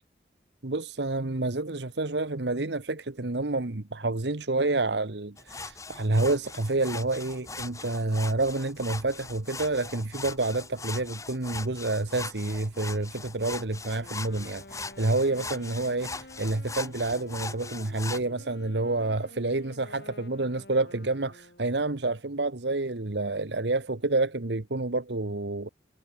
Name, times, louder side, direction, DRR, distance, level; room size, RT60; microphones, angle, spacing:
voice 1, 0.6-25.7, right 2 dB, 75° right, 1.3 m, -29 dB
sound 1, 5.4-18.2, left 4 dB, 15° left, 3.4 m, -40 dB
Wind instrument woodwind instrument, 14.0-21.8, left 1 dB, 65° left, 5.6 m, -49 dB
head